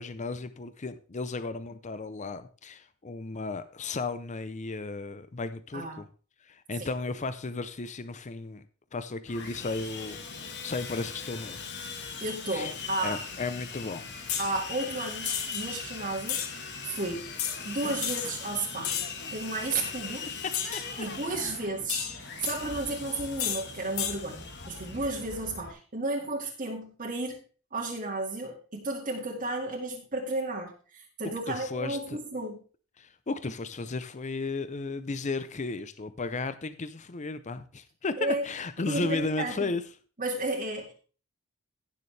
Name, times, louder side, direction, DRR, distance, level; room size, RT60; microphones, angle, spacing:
voice 1, 0.0-6.1 6.4-8.6 8.9-11.7 12.5-12.7 13.0-14.0 20.4-20.5 31.5-32.2 33.0-39.8, left 3 dB, 35° left, 12 dB, 0.6 m, -34 dB
Sawing, 9.3-25.7, left 5 dB, 55° left, 1.5 m, -40 dB
voice 2, 12.2-13.2 14.4-17.3 17.6-18.9 19.3-20.3 21.0-27.4 27.7-32.6 38.2-38.4 38.9-39.7 40.2-40.9, right 2 dB, 40° right, -1 dB, 2.0 m, -33 dB
sound 1, 14.3-14.5 15.3-15.6 16.3-16.5 17.4-17.6 18.0-18.3 18.8-19.2 20.5-20.9 21.9-22.6 23.4-23.6 24.0-24.2, left 9 dB, 70° left, 1.6 m, -31 dB
16.5 x 6.9 x 3.3 m, 0.38 s
head